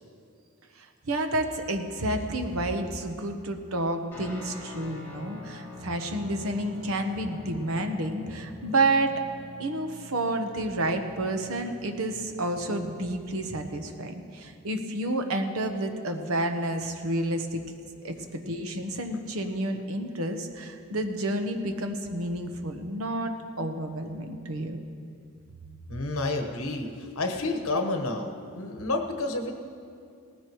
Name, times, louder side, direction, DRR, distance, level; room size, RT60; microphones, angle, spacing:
voice 1, 0.8-9.2 9.6-17.6 18.0-24.8, right 1 dB, 80° right, 6 dB, 1.1 m, -30 dB
Guitar, 4.1-13.2, left 1 dB, 10° left, 3.6 m, -45 dB
voice 2, 25.9-29.5, left 2 dB, 75° left, 4 dB, 1.3 m, -30 dB
18.5 x 15.0 x 3.1 m, 2.4 s
head